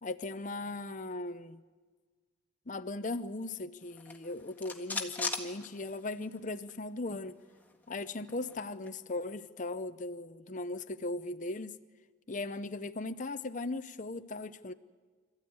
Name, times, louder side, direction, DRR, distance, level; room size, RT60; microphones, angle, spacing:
voice 1, 0.0-1.6 2.7-7.4 7.9-11.8 12.3-14.7, left 2 dB, 40° left, 0.7 m, -38 dB
sound 1, 3.9-6.4 6.7-6.8 7.1-9.0, left 3 dB, 10° left, 1.7 m, -40 dB
26.5 x 14.5 x 9.6 m
head